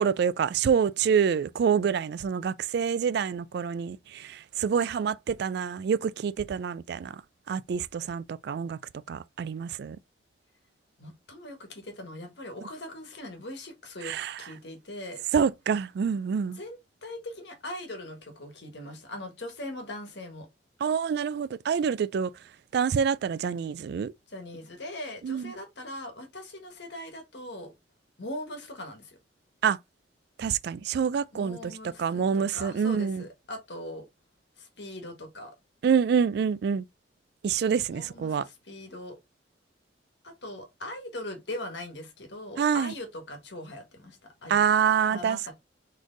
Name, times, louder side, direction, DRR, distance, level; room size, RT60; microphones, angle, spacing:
voice 1, 0.0-7.2 7.5-8.8 9.1-10.0 14.0-14.3 15.3-16.6 20.8-22.3 22.7-24.1 25.2-25.5 29.6-29.8 30.4-31.7 32.0-33.2 35.8-36.8 37.4-38.4 42.6-42.9 44.5-45.5, right 7 dB, 60° right, 0.3 m, -26 dB
voice 2, 11.0-15.2 16.5-20.5 24.3-27.7 28.2-29.2 31.3-34.1 34.6-35.6 37.9-39.2 40.2-44.6 45.0-45.5, left 1 dB, 65° left, 1.4 m, -40 dB
4.2 x 3.2 x 3.8 m
head